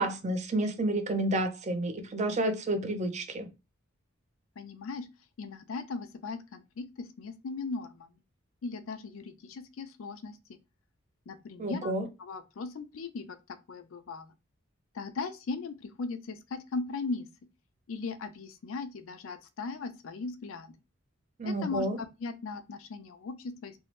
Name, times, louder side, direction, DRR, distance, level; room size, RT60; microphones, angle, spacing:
voice 1, 0.0-3.5 11.6-12.1 21.4-22.0, right 1 dB, 35° right, 0.4 m, -30 dB
voice 2, 4.6-5.1 5.4-8.1 8.6-10.4 11.3-13.4 13.7-14.3 14.9-17.3 17.9-20.7 21.4-23.7, left 4 dB, 85° left, 0.4 m, -38 dB
2.6 x 2.0 x 3.0 m
head